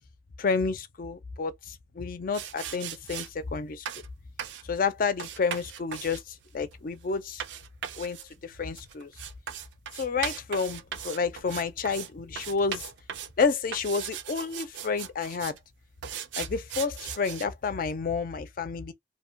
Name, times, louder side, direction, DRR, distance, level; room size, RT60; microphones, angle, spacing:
voice 1, 0.4-3.8 4.6-7.4 8.0-8.2 8.4-9.1 9.9-12.8 13.4-15.6 16.4-18.9, left 5 dB, 50° left, 0.4 m, -30 dB
sound 1, 2.3-3.3 3.9-4.1 4.4-4.7 5.2-12.1 12.4-13.4 13.7-15.6 16.0-17.5, right 9 dB, 80° right, 0.4 m, -38 dB
2.7 x 2.2 x 2.7 m
head